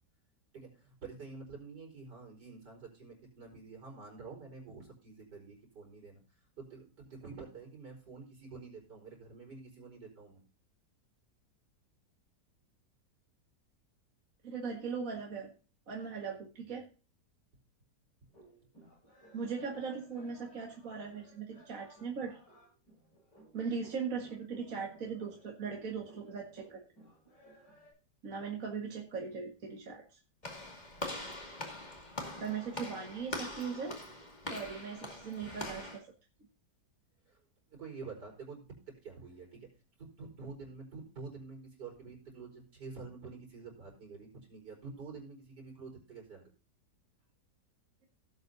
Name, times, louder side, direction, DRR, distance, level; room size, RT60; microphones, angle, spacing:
voice 1, 0.5-6.2 6.6-10.4 37.3-37.4 37.7-38.7 39.0-39.7 40.0-46.4, right 4 dB, 75° right, -1 dB, 5.3 m, -48 dB
voice 2, 14.4-15.5 15.9-16.9 19.3-22.4 23.5-26.8 28.2-30.0 32.4-34.0 34.5-36.0, right 5 dB, 50° right, 0 dB, 2.1 m, -39 dB
sound 1, 18.3-27.9, right 1 dB, 80° left, 7.9 m, -59 dB
Walk footsteps / Slam, 30.4-36.0, left 2 dB, 25° left, 2.4 m, -42 dB
17.5 x 8.0 x 2.7 m, 0.35 s
omnidirectional pair, 1.8 m